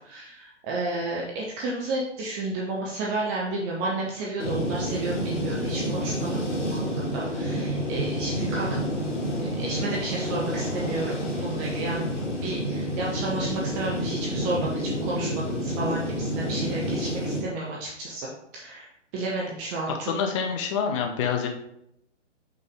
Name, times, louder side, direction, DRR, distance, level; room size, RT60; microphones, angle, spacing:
voice 1, 0.0-8.7 9.4-11.2 11.4-12.1 12.4-18.3 18.5-18.9 19.1-20.1, right 2 dB, 15° right, -4 dB, 0.5 m, -32 dB
sound 1, 4.4-17.4, equal, 70° left, 2.4 m, -29 dB
voice 2, 19.9-21.5, left 6 dB, 25° left, 4 dB, 0.7 m, -27 dB
5.8 x 5.3 x 3.5 m, 0.76 s
figure-of-eight pair, 125°, 37 cm